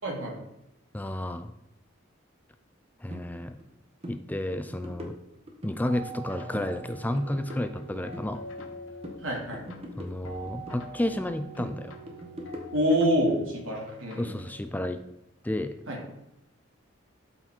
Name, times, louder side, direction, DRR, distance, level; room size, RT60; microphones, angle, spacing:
voice 1, 0.0-0.4 9.2-9.6 12.7-14.3 15.9-16.0, equal, 85° right, -2 dB, 2.6 m, -26 dB
voice 2, 0.9-1.5 3.0-3.6 4.1-5.1 5.6-8.4 10.0-11.9 14.2-15.0 15.4-15.7, left 1 dB, 10° left, 9 dB, 0.4 m, -31 dB
sound 1, 3.1-3.2 3.6-3.8 4.0-4.2 4.5-5.8 6.1-6.7 7.0-8.8 9.0-10.8 11.1-13.0, equal, 30° right, 1.3 m, -43 dB
sound 2, 5.8-14.6, right 1 dB, 80° left, 1.1 m, -44 dB
12.0 x 4.1 x 4.4 m, 0.86 s
head